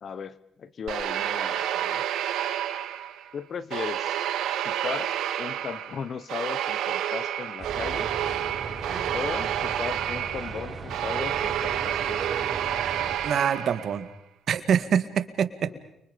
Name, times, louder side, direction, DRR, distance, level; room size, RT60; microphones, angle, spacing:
voice 1, 0.0-2.0 3.3-4.2 4.6-5.1 5.4-8.1 9.1-12.5 13.3-13.4 15.6-15.8, left 6 dB, 50° left, 16 dB, 1.2 m, -36 dB
sound 1, 0.9-3.3 3.7-14.0, right 11 dB, 85° right, 2.0 m, -29 dB
sound 2, 7.6-13.2, right 4 dB, 30° right, 5.3 m, -37 dB
voice 2, 13.2-14.1 14.5-15.5, right 8 dB, 60° right, 11 dB, 1.8 m, -24 dB
30.0 x 24.5 x 5.3 m, 0.77 s
cardioid pair, 90°, 0 cm